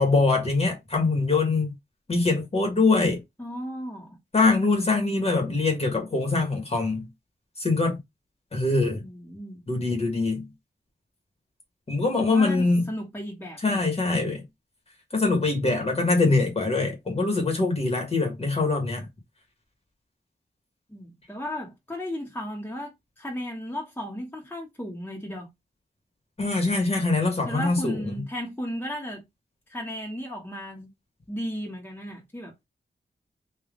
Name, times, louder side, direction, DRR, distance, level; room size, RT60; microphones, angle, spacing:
voice 1, 0.0-1.7 2.1-3.2 4.3-7.1 7.6-7.9 8.5-9.0 9.7-10.5 11.9-12.9 13.6-14.4 15.1-19.0 26.4-28.2, left 3 dB, 35° left, 1.4 m, -23 dB
voice 2, 3.4-4.2 8.8-9.6 12.3-13.8 20.9-25.5 27.4-29.2 29.7-30.9 31.3-32.5, equal, 10° left, 1.2 m, -35 dB
3.5 x 2.6 x 3.7 m
wide cardioid pair, 130°, 18 cm